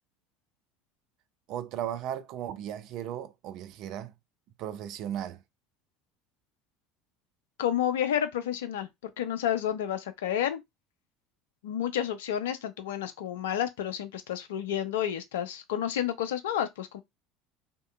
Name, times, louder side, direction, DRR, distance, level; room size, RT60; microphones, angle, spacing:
voice 1, 1.5-4.1 4.6-5.4, right 10 dB, 55° right, 0.4 m, -36 dB
voice 2, 7.6-10.6 11.6-17.0, left 10 dB, 70° left, 0.4 m, -30 dB
2.7 x 2.2 x 2.3 m
figure-of-eight pair, 70°, 0 cm